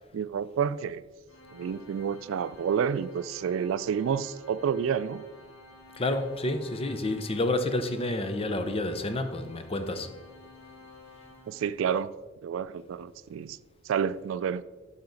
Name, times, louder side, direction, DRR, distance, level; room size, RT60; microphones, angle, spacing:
voice 1, 0.1-1.0 1.5-5.2 11.5-12.1 12.4-13.6 13.9-14.6, right 7 dB, 70° right, 0.3 m, -29 dB
Organ, 1.3-12.1, left 2 dB, 85° left, 1.2 m, -52 dB
voice 2, 5.9-10.1, left 2 dB, 30° left, 0.7 m, -29 dB
10.5 x 5.8 x 3.9 m
head